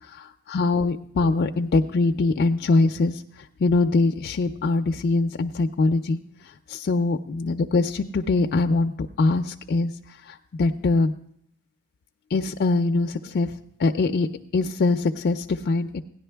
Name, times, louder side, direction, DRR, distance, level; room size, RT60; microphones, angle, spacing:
voice 1, 0.5-6.2 6.7-9.9 10.2-11.1 12.3-14.3 14.5-16.0, left 3 dB, 50° left, 5 dB, 0.4 m, -23 dB
16.5 x 10.5 x 3.4 m, 0.68 s
head